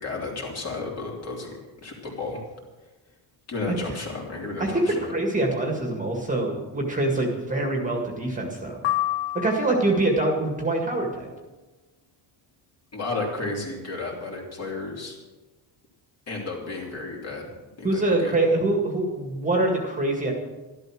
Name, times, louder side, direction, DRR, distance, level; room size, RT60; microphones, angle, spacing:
voice 1, 0.0-1.5 1.8-2.4 3.5-5.1 12.9-15.2 16.3-18.3, left 3 dB, 35° left, -1 dB, 3.4 m, -33 dB
voice 2, 4.6-8.8 9.3-11.3 17.8-20.3, right 2 dB, 15° right, 1 dB, 1.9 m, -24 dB
sound 1, 8.8-10.1, left 16 dB, 85° left, 0.7 m, -28 dB
13.0 x 12.0 x 6.3 m, 1.2 s
cardioid pair, 155°, 43 cm